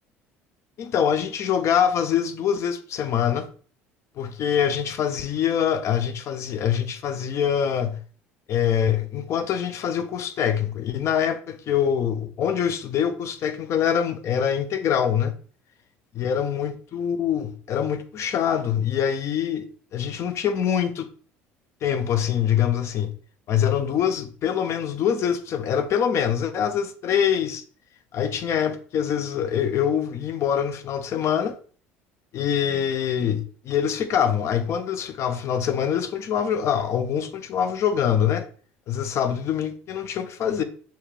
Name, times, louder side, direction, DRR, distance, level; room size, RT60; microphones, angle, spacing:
voice 1, 0.8-3.5 4.2-8.0 8.5-15.3 16.1-19.6 19.9-21.1 21.8-23.1 23.5-27.6 28.1-31.5 32.3-38.4 38.9-40.6, left 8 dB, 50° left, 0.6 m, -24 dB
6.8 x 2.4 x 3.2 m
hypercardioid pair, 70°, 6 cm